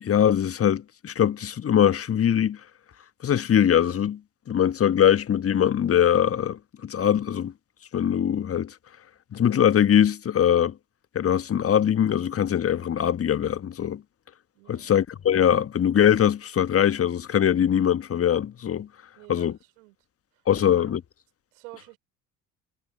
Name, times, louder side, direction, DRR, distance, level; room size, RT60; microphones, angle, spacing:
voice 1, 0.0-2.6 3.2-4.2 4.5-7.5 7.9-8.7 9.3-10.7 11.1-14.0 14.7-18.9 19.3-19.5 20.5-21.0, left 9 dB, 30° left, 1.5 m, -22 dB
voice 2, 14.5-14.9 19.2-20.0 20.3-21.0 21.5-22.0, right 24 dB, 65° right, 5.9 m, -49 dB
figure-of-eight pair, 60°, 48 cm